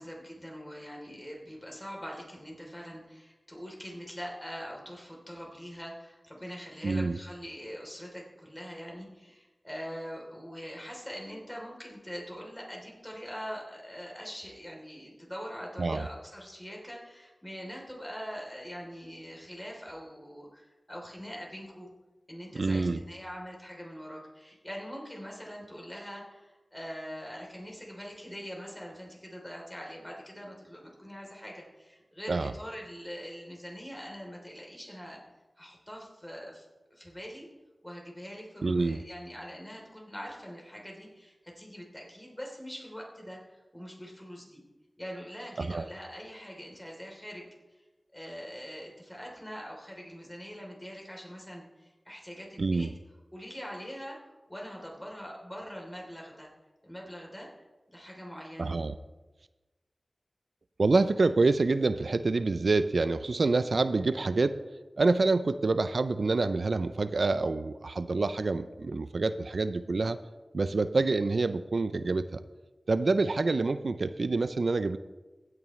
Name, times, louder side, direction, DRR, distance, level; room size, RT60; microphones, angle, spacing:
voice 1, 0.0-21.9 22.3-35.2 35.6-36.6 36.9-37.5 37.8-44.6 45.0-47.9 48.1-52.9 53.3-54.2 54.5-56.5 56.8-57.5 57.9-58.8, equal, 15° left, -1 dB, 3.2 m, -43 dB
voice 2, 6.8-7.2 15.8-16.0 22.5-23.0 32.3-32.5 38.6-39.0 45.6-45.9 52.6-52.9 58.6-59.0 60.8-64.6 65.0-70.2 70.5-72.4 72.9-75.0, right 3 dB, 75° right, 12 dB, 0.4 m, -27 dB
16.0 x 9.1 x 3.2 m, 1.2 s
wide cardioid pair, 60°, 0 cm